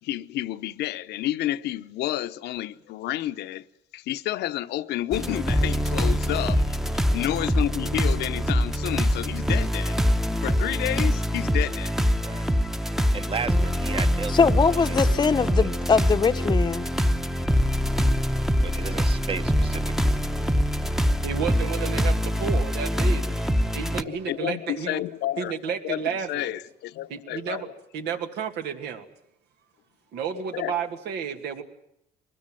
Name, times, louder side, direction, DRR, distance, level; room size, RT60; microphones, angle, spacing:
voice 1, 0.0-3.6 3.9-10.0 10.4-11.9 24.0-27.7 30.5-30.8, left 14 dB, 80° left, 1.0 m, -30 dB
sound 1, 5.1-24.0, equal, ahead, 0.9 m, -24 dB
voice 2, 13.1-14.4 14.7-14.8 15.1-15.7 18.6-20.1, right 5 dB, 30° right, 1.3 m, -35 dB
voice 3, 14.3-16.9, left 5 dB, 25° left, 0.9 m, -22 dB
voice 4, 21.2-23.4 23.7-25.0 25.4-26.6 27.1-27.7 27.9-29.1 30.1-31.6, right 7 dB, 80° right, 2.5 m, -31 dB
23.5 x 20.5 x 9.1 m
cardioid pair, 110°, 17 cm